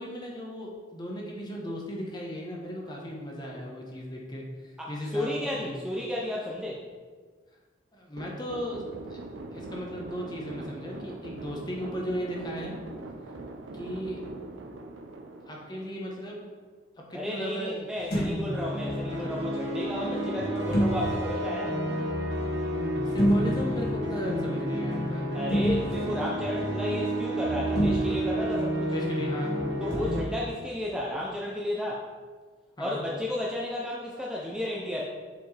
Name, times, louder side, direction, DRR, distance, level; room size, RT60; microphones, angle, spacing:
voice 1, 0.0-5.7 7.9-9.2 9.5-12.8 13.7-14.2 15.5-16.4 17.1-18.3 19.1-19.3 23.1-25.3 28.9-29.5 32.8-33.0, equal, 25° left, -2 dB, 1.0 m, -36 dB
voice 2, 4.8-6.9 17.1-21.8 25.3-28.9 29.8-32.1 32.8-35.0, left 1 dB, 5° right, -4 dB, 0.5 m, -33 dB
sound 1, 8.2-16.5, right 2 dB, 90° right, 0.6 m, -42 dB
sound 2, 18.0-18.4 20.7-21.2 23.0-23.9 25.5-26.1 27.8-28.2 29.9-30.3, equal, 55° left, 1.7 m, -26 dB
sound 3, 18.2-30.2, equal, 65° right, 1.3 m, -30 dB
6.9 x 4.3 x 3.3 m, 1.5 s
head